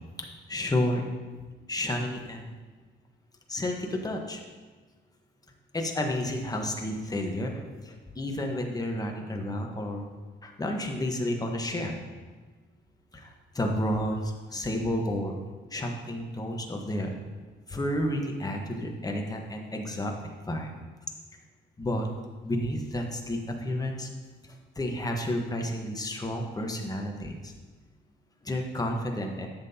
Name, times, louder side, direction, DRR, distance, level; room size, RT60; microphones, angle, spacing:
voice 1, 0.2-1.0 1.7-2.5 3.5-4.4 5.7-10.0 10.4-12.0 13.1-15.4 15.7-17.1 17.7-20.1 20.5-20.7 21.8-22.1 22.4-24.1 24.7-27.5 28.4-29.5, left 1 dB, 20° left, 2 dB, 1.2 m, -31 dB
10.5 x 7.6 x 2.9 m, 1.4 s
cardioid pair, 90°, 20 cm